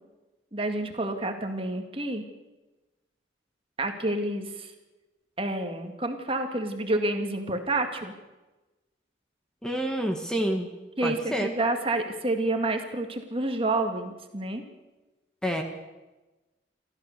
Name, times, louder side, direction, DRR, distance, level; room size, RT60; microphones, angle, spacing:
voice 1, 0.5-2.2 3.8-4.7 5.4-8.1 11.0-14.6, right 2 dB, 30° right, 5 dB, 2.0 m, -29 dB
voice 2, 9.6-10.7 11.0-11.5 15.4-15.6, right 1 dB, 5° left, 3 dB, 1.6 m, -28 dB
29.0 x 13.5 x 6.7 m, 1.1 s
head